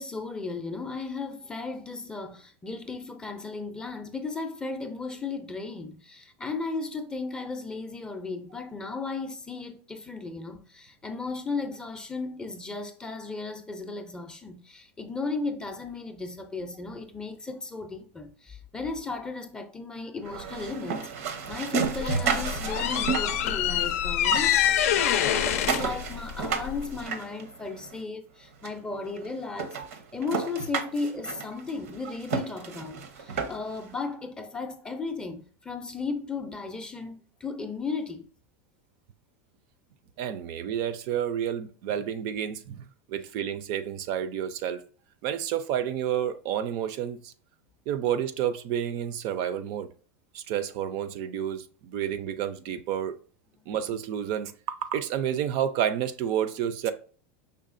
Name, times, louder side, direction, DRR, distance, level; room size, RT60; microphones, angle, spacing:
voice 1, 0.0-29.8 30.1-38.3, left 3 dB, 10° left, 0.4 m, -35 dB
sound 1, 20.2-23.9 24.2-28.0 28.6-28.7 29.2-29.3 29.6-33.8, right 6 dB, 90° right, 0.8 m, -32 dB
sound 2, 21.8-27.0, left 10 dB, 90° left, 0.5 m, -26 dB
voice 2, 40.2-44.8 45.2-47.3 47.9-49.9 50.3-53.2 53.7-56.9, right 9 dB, 50° right, 0.4 m, -30 dB
5.5 x 3.5 x 2.5 m
supercardioid pair, 150°, 8 cm